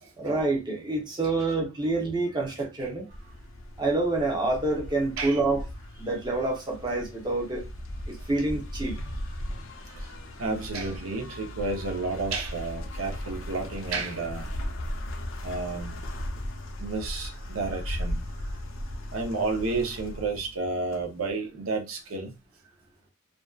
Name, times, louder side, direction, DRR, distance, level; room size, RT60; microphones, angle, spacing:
voice 1, 0.2-3.0 3.8-5.6 6.0-7.7 8.1-8.9, right 2 dB, 20° right, 0.7 m, -27 dB
sound 1, 3.1-21.3, left 1 dB, 65° left, 0.5 m, -37 dB
voice 2, 10.4-14.5 15.4-16.0 16.8-18.2 19.1-22.3, right 3 dB, 80° right, 0.7 m, -31 dB
2.6 x 2.2 x 2.3 m
head